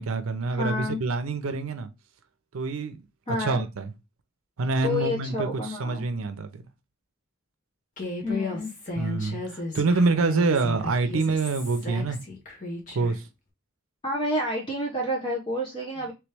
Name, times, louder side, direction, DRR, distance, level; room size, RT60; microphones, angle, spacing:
voice 1, 0.0-1.9 2.5-3.0 3.4-3.9 4.6-6.7 9.0-12.2 12.9-13.3, right 3 dB, 90° right, 0.6 m, -26 dB
voice 2, 0.5-1.0 3.3-3.6 4.8-6.0 8.2-8.7 14.0-16.1, left 1 dB, 25° left, 0.8 m, -29 dB
Human voice, 8.0-13.2, left 2 dB, 40° left, 1.2 m, -34 dB
3.3 x 3.0 x 3.3 m
head